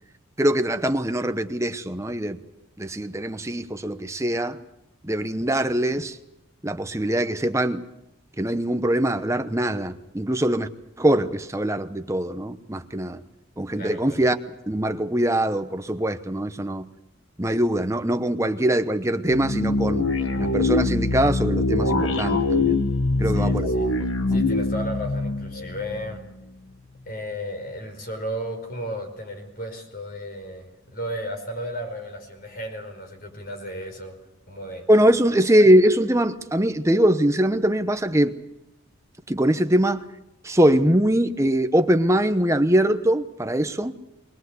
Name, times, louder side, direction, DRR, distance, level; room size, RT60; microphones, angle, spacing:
voice 1, 0.4-2.4 2.8-4.6 5.0-6.2 6.6-7.8 8.4-10.7 11.0-13.2 13.6-14.4 14.7-16.9 17.4-20.1 20.4-22.8 23.2-23.7 24.3-24.4 34.9-38.4 39.3-40.0 40.4-44.0, right 1 dB, 15° right, 9 dB, 0.9 m, -22 dB
voice 2, 13.7-14.2 23.2-24.0 24.3-26.2 27.0-34.1 34.5-34.9, equal, 45° left, 5 dB, 4.9 m, -34 dB
sound 1, 19.3-26.4, left 2 dB, 80° left, 1.5 m, -23 dB
22.5 x 20.0 x 8.1 m, 0.89 s
head